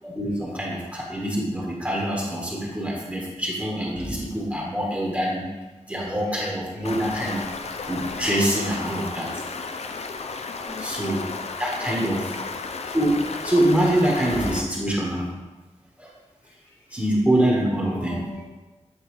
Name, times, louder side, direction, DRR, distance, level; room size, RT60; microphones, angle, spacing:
voice 1, 0.0-5.5 5.9-7.4 7.9-9.4 10.8-11.3 11.6-12.4 12.9-13.2 13.4-15.3 16.0-16.1 16.9-18.2, right 1 dB, 10° right, -4 dB, 1.2 m, -25 dB
Stream, 6.8-14.6, left 4 dB, 60° left, 0.5 m, -33 dB
voice 2, 10.6-11.2 12.1-12.6 16.4-16.8 17.7-18.5, left 2 dB, 85° left, -6 dB, 1.5 m, -40 dB
8.4 x 4.4 x 3.1 m, 1.2 s
wide cardioid pair, 105°, 12 cm